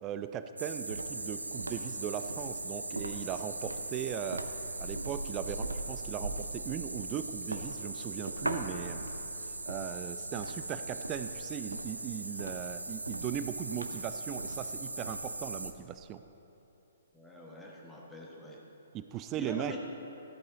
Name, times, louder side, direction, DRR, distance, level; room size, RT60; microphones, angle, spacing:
voice 1, 0.0-4.4 4.8-9.0 9.7-16.2 18.9-19.8, right 10 dB, 20° right, 10 dB, 0.4 m, -38 dB
sound 1, 0.6-15.7, right 2 dB, 80° right, 0.6 m, -38 dB
voice 2, 17.1-18.6 19.4-19.8, left 1 dB, 5° left, -3 dB, 1.3 m, -44 dB
14.0 x 8.5 x 3.8 m, 3.0 s
figure-of-eight pair, 125°, 0 cm